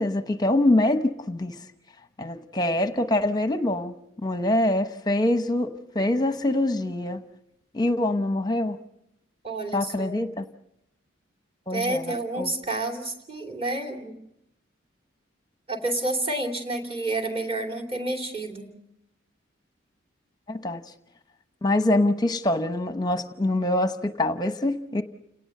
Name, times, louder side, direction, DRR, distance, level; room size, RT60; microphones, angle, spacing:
voice 1, 0.0-1.6 2.2-4.0 4.2-7.2 7.7-8.8 9.7-10.4 11.7-12.5 20.5-20.9 21.6-25.0, left 1 dB, 20° left, 8 dB, 0.8 m, -24 dB
voice 2, 9.4-10.2 11.7-14.1 15.7-18.7, right 2 dB, 30° right, 3 dB, 2.9 m, -29 dB
29.5 x 18.5 x 6.6 m, 0.81 s
head